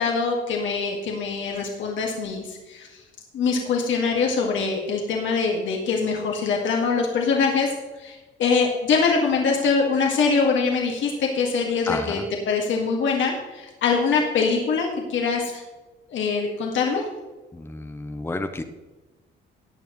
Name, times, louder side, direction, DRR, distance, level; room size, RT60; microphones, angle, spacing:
voice 1, 0.0-3.0 3.3-7.7 8.0-15.6 16.1-17.0, left 5 dB, 75° left, 0 dB, 1.8 m, -23 dB
voice 2, 11.9-12.3 17.5-18.6, left 2 dB, 10° left, 5 dB, 0.7 m, -31 dB
14.0 x 8.9 x 3.1 m, 1.2 s
cardioid pair, 90°, 20 cm